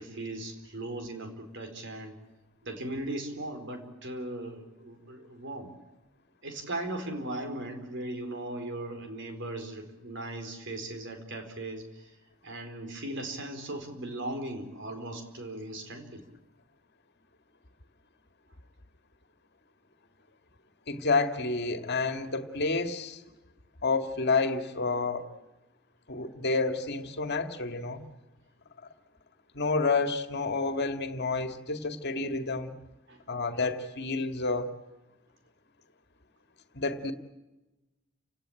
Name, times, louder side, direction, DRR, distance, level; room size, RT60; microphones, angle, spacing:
voice 1, 0.0-2.2 2.6-5.7 6.4-12.1 12.4-16.2 33.1-33.2, right 1 dB, 60° right, 6 dB, 4.6 m, -38 dB
voice 2, 20.9-23.2 23.8-25.3 26.1-28.0 29.5-32.7 33.3-34.7 36.7-37.1, left 3 dB, 55° left, 7 dB, 2.1 m, -29 dB
30.0 x 17.5 x 9.1 m, 1.1 s
head